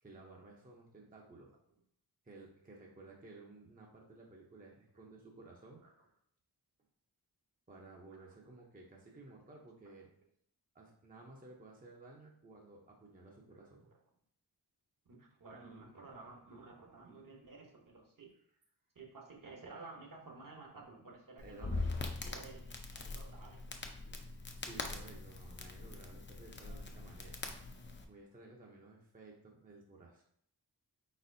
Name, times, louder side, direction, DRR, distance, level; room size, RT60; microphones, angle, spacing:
voice 1, 0.0-1.6 2.2-6.2 7.7-10.1 10.7-13.9 21.4-21.8 24.5-27.4 28.1-30.2, right 2 dB, 20° right, -1 dB, 0.6 m, -55 dB
voice 2, 15.1-18.3 18.9-21.8 22.1-23.9, right 3 dB, 50° right, 1 dB, 0.9 m, -53 dB
Crackle, 21.4-28.0, left 3 dB, 30° left, 0.5 m, -42 dB
4.2 x 4.2 x 2.6 m, 0.67 s
wide cardioid pair, 110°, 42 cm